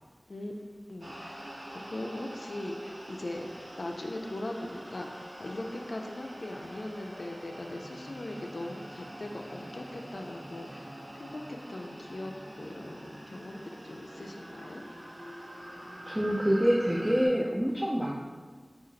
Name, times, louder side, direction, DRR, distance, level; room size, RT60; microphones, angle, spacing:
voice 1, 0.9-1.4 1.7-13.6 13.8-14.8, left 1 dB, 90° left, 2 dB, 0.4 m, -40 dB
sound 1, 1.0-17.3, right 1 dB, 80° right, 0.8 m, -45 dB
voice 2, 16.1-18.2, equal, 15° right, -2 dB, 0.5 m, -26 dB
5.1 x 2.4 x 3.9 m, 1.4 s
wide cardioid pair, 40°, 0 cm